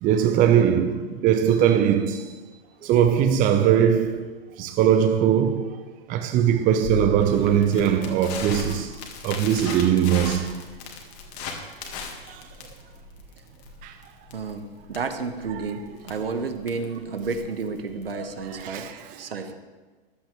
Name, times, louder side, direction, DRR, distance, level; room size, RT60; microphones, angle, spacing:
voice 1, 0.0-2.3 2.8-4.2 4.6-5.8 6.1-8.9 9.2-10.5 12.3-12.4 13.8-13.9 15.5-15.6 18.1-19.2, right 9 dB, 30° right, 0.8 m, -21 dB
Crackle, 6.8-18.8, left 3 dB, 45° left, 2.3 m, -36 dB
voice 2, 14.3-18.9 19.2-19.5, right 4 dB, 70° right, 1.3 m, -31 dB
15.0 x 11.5 x 3.6 m
figure-of-eight pair, 100°, 30 cm